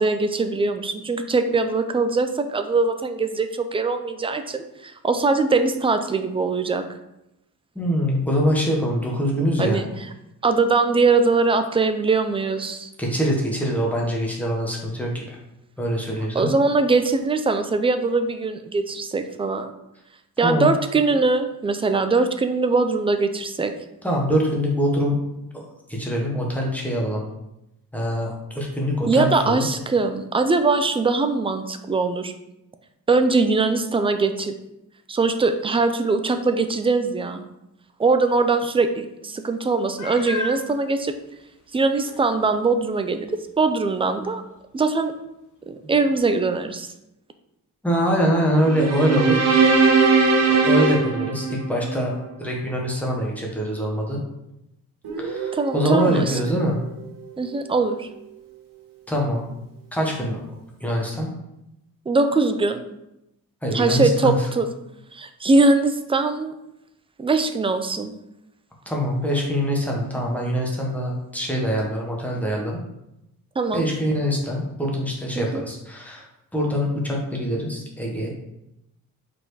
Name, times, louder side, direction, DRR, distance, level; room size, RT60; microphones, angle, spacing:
voice 1, 0.0-6.9 9.6-9.9 10.4-12.9 16.3-19.7 20.4-23.7 29.1-32.3 33.1-34.5 35.1-37.4 38.0-41.1 41.7-43.3 43.6-44.4 44.7-45.1 45.7-46.9 55.5-56.4 57.4-58.1 62.1-62.8 63.7-64.7 65.1-66.5 67.2-68.1 73.6-73.8 75.4-75.6, right 3 dB, 15° right, 8 dB, 0.4 m, -21 dB
voice 2, 7.7-9.8 13.0-15.4 15.8-16.5 20.4-20.7 24.0-25.2 25.5-27.2 27.9-29.7 47.8-49.5 50.5-54.2 55.2-56.8 59.1-59.4 59.9-60.4 60.8-61.3 63.6-64.4 68.9-72.8 73.7-76.3 76.5-78.3, equal, 5° left, -2 dB, 1.3 m, -24 dB
Meow, 40.0-40.7 41.4-41.5 42.0-42.1 46.1-46.2, left 1 dB, 60° left, 1.2 m, -31 dB
sound 1, 48.7-52.1, right 4 dB, 50° right, 1.1 m, -19 dB
Guitar, 55.0-58.9, right 4 dB, 70° right, 2.2 m, -36 dB
5.5 x 4.4 x 4.8 m, 0.87 s
wide cardioid pair, 160°, 35 cm